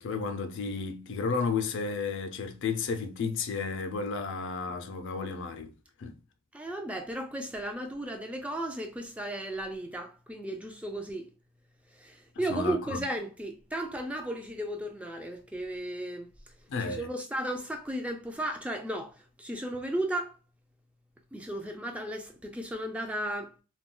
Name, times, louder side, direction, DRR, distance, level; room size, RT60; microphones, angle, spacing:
voice 1, 0.0-5.7 6.0-6.2 12.5-13.0 16.7-17.1, left 4 dB, 60° left, 0.4 m, -32 dB
voice 2, 6.5-11.3 11.9-16.5 16.8-20.4 21.3-23.6, right 1 dB, 5° right, 0.4 m, -35 dB
2.3 x 2.2 x 3.7 m
head